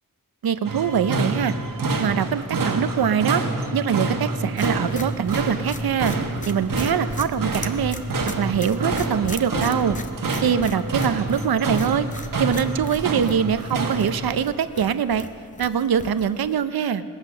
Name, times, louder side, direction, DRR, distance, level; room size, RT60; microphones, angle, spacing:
voice 1, 0.4-1.5 2.0-3.4 3.7-6.1 6.5-8.0 8.3-10.0 10.4-12.1 12.4-15.3 15.6-17.0, right 8 dB, 85° right, 12 dB, 0.7 m, -23 dB
sound 1, 0.6-14.3, right 3 dB, 65° right, 1.4 m, -27 dB
sound 2, 4.6-16.5, left 2 dB, 20° left, 0.7 m, -38 dB
20.5 x 8.1 x 6.5 m, 2.1 s
wide cardioid pair, 130°, 36 cm